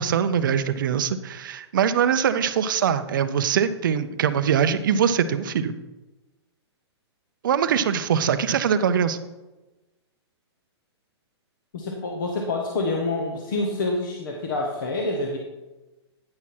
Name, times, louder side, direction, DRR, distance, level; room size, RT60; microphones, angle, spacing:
voice 1, 0.0-5.7 7.4-9.2, right 8 dB, 45° right, 11 dB, 0.5 m, -22 dB
voice 2, 11.7-15.4, left 2 dB, 50° left, 0 dB, 1.0 m, -27 dB
9.6 x 6.0 x 4.3 m, 1.1 s
hypercardioid pair, 175°, 14 cm